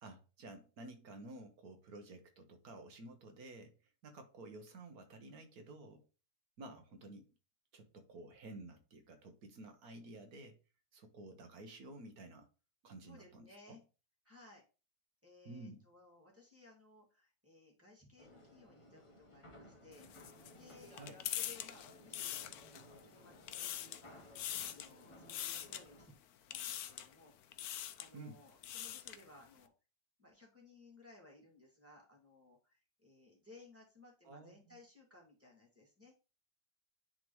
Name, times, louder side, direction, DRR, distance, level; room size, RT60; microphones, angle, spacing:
voice 1, 0.0-3.7 4.0-6.0 6.6-7.3 7.7-10.6 10.9-12.5 12.8-13.8 15.4-15.8 20.9-21.2 28.1-28.4 34.2-34.8, right 2 dB, 65° right, 1.4 m, -52 dB
voice 2, 13.0-13.8 14.2-14.6 15.2-20.1 20.6-21.0 21.3-22.4 22.7-26.2 26.5-27.3 27.6-29.7 30.2-36.1, left 2 dB, 10° right, 1.8 m, -61 dB
sound 1, 18.2-26.1, left 1 dB, 25° left, 0.7 m, -59 dB
sound 2, 19.9-23.0 23.3-24.1 24.4-24.9 25.3-25.8 26.5-27.1 27.5-28.1 28.5-29.2, left 11 dB, 75° left, 1.0 m, -43 dB
10.0 x 3.6 x 3.1 m
omnidirectional pair, 1.8 m